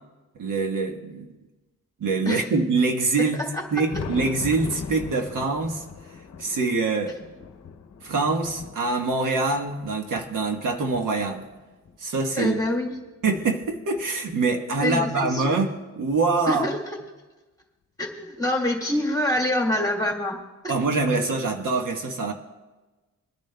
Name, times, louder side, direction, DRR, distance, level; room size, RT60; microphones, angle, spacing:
voice 1, 0.3-1.3 2.0-3.4 3.7-5.8 6.4-7.2 8.0-11.4 12.0-12.6 13.2-15.7 16.0-16.7 20.7-22.3, right 3 dB, 70° right, 4 dB, 1.3 m, -24 dB
Thunder, 3.4-12.0 12.6-14.3 15.5-15.6 16.1-16.2 18.1-18.2 19.5-19.6 21.2-21.3, left 5 dB, 50° left, 0.8 m, -41 dB
voice 2, 12.4-13.0 14.8-15.6 16.5-16.8 18.0-20.4 20.6-20.7, left 1 dB, 10° left, 0 dB, 1.9 m, -26 dB
25.5 x 10.5 x 2.2 m, 1.2 s
wide cardioid pair, 120°, 33 cm